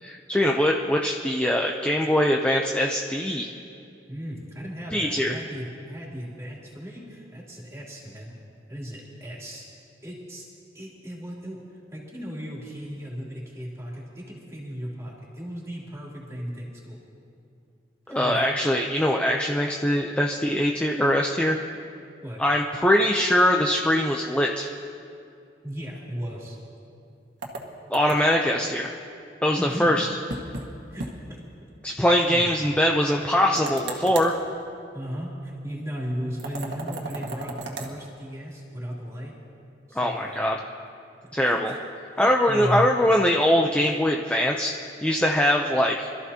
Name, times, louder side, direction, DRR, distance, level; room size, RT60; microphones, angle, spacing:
voice 1, 0.0-3.5 4.9-5.3 18.1-21.6 22.4-24.7 27.9-28.9 29.4-30.1 31.8-34.3 40.0-40.6 41.3-41.7 42.2-44.7 45.0-46.1, equal, 5° left, 0 dB, 0.6 m, -22 dB
voice 2, 4.1-8.3 8.7-9.7 10.0-10.5 10.7-11.6 11.9-17.0 18.1-18.4 22.2-22.4 25.6-26.6 29.6-30.1 30.9-31.4 32.3-32.5 34.9-39.3 39.9-40.5 41.4-41.8 42.1-42.8, equal, 15° right, -5 dB, 3.1 m, -36 dB
sound 1, 27.4-28.4 30.3-30.7 31.0-31.1 31.5-31.6 33.6-34.3 36.4-37.9, right 2 dB, 85° right, 1.8 m, -35 dB
26.0 x 14.0 x 2.9 m, 2.5 s
head